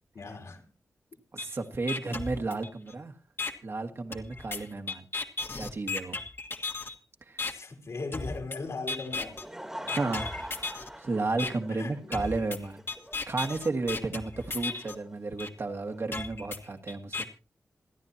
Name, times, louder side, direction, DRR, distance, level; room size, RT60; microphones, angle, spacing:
voice 1, 0.1-0.6 7.4-9.4 11.7-12.3, left 3 dB, 70° left, 3.3 m, -38 dB
voice 2, 1.3-3.1 3.6-5.1 5.5-6.2 7.3-7.4 9.8-12.8 13.3-17.3, right 3 dB, 55° right, 1.9 m, -33 dB
sound 1, 1.4-1.5 1.9-2.9 3.4-3.5 4.1-6.9 7.4-7.5 8.1-8.6 8.9-9.4 9.9-10.9 11.4-11.5 12.1-14.9 15.4-15.5 16.1-17.2, left 3 dB, 50° left, 1.7 m, -35 dB
Laughter / Crowd, 9.0-16.0, right 1 dB, 10° right, 1.7 m, -45 dB
27.5 x 9.9 x 2.9 m
cardioid pair, 55°, 5 cm